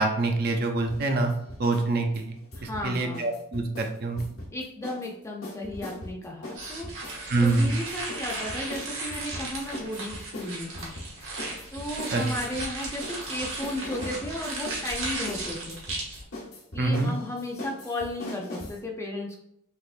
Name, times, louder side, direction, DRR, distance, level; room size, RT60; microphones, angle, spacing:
voice 1, 0.0-1.3 1.6-4.2 7.3-7.7 12.1-12.2 16.8-17.1, right 2 dB, 50° right, 4 dB, 0.5 m, -25 dB
sound 1, 0.9-1.9 2.1-5.1 5.4-18.8, left 1 dB, 75° left, 1.0 m, -40 dB
voice 2, 2.6-3.3 4.5-6.9 7.4-10.9 11.7-15.8 16.7-19.4, left 1 dB, 15° left, 0 dB, 0.5 m, -34 dB
sound 2, 6.5-16.2, right 2 dB, 75° right, 1.2 m, -36 dB
3.5 x 2.9 x 2.5 m, 0.75 s
head